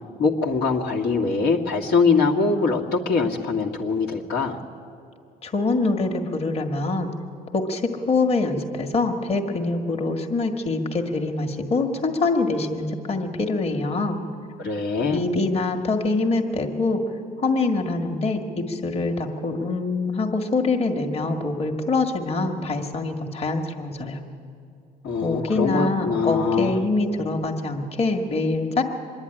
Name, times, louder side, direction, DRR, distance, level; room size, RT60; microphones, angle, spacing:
voice 1, 0.2-4.6 14.6-15.3 25.0-26.8, left 4 dB, 75° left, -1 dB, 1.9 m, -23 dB
voice 2, 5.4-7.1 7.5-14.2 15.1-17.0 17.4-24.2 25.2-28.8, left 3 dB, 35° left, 2 dB, 1.8 m, -24 dB
24.5 x 10.5 x 10.0 m, 2.5 s
cardioid pair, 110°, 17 cm